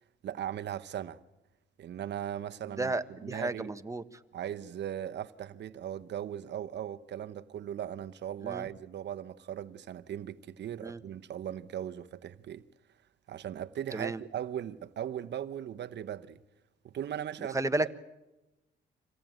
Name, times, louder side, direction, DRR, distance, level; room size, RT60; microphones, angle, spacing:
voice 1, 0.2-1.2 1.8-2.9 3.2-3.7 4.3-12.6 13.3-16.4 16.8-17.6, right 10 dB, 60° right, 0.9 m, -38 dB
voice 2, 2.7-4.0 8.4-8.7 10.8-11.0 13.9-14.2 17.4-17.9, right 2 dB, 15° right, 1.2 m, -33 dB
26.5 x 17.5 x 9.1 m
cardioid pair, 90°, 20 cm